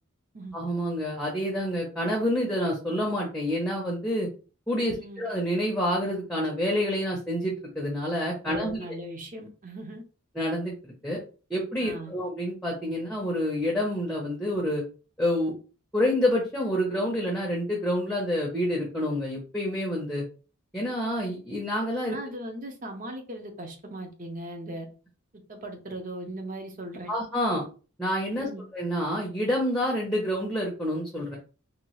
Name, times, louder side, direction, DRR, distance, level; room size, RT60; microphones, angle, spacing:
voice 1, 0.5-4.3 4.7-8.8 10.3-11.2 11.5-14.8 15.2-15.5 15.9-20.2 20.7-22.2 27.1-27.6 28.0-31.4, equal, 5° left, 0.6 m, -28 dB
voice 2, 4.9-5.3 8.4-10.0 11.8-12.1 22.0-24.9 25.5-27.1 28.3-28.6, right 1 dB, 35° right, 0.6 m, -38 dB
2.8 x 2.3 x 3.0 m
head